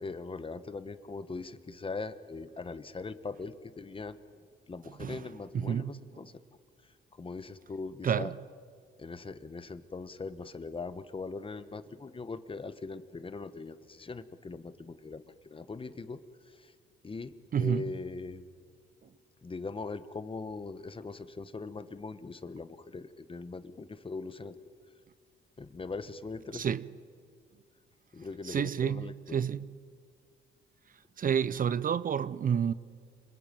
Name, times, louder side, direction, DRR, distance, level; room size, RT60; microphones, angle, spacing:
voice 1, 0.0-4.2 4.7-6.3 7.2-8.3 9.0-16.7 17.0-18.5 19.4-24.6 25.6-26.7 28.1-29.4, left 4 dB, 25° left, 1.2 m, -41 dB
voice 2, 5.5-5.9 8.0-8.3 17.5-17.8 26.5-26.9 28.4-29.7 31.2-32.7, right 8 dB, 45° right, 0.6 m, -29 dB
26.5 x 21.0 x 9.2 m
cardioid pair, 90°, 20 cm